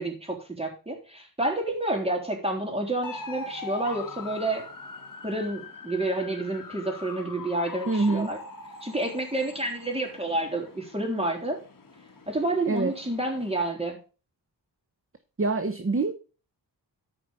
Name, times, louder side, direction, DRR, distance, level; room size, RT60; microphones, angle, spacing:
voice 1, 0.0-4.6 5.2-8.4 8.8-11.6 12.3-14.0, right 2 dB, 15° right, 0 dB, 3.7 m, -29 dB
sound 1, 3.0-13.7, left 4 dB, 50° left, 1.8 m, -42 dB
voice 2, 7.9-8.3 12.7-12.9 15.4-16.1, right 3 dB, 30° right, 9 dB, 0.9 m, -25 dB
14.0 x 5.1 x 5.3 m, 0.35 s
wide cardioid pair, 100°, 43 cm